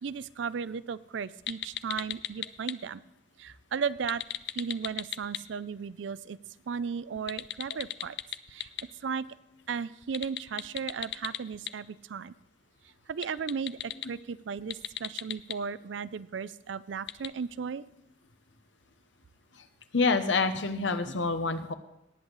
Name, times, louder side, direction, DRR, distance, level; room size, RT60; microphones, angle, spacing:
voice 1, 0.0-3.0 3.4-4.2 4.6-6.4 6.7-8.2 8.5-8.7 9.0-9.3 9.7-12.3 13.1-17.8, right 6 dB, 80° right, 17 dB, 0.4 m, -35 dB
sound 1, 1.5-2.7 4.0-5.4 7.2-8.8 10.0-11.7 13.1-14.0 14.6-15.5 17.1-17.3, left 13 dB, 65° left, 0.5 m, -34 dB
voice 2, 19.9-21.7, left 4 dB, 85° left, 10 dB, 0.9 m, -27 dB
18.5 x 8.0 x 4.0 m, 0.82 s
head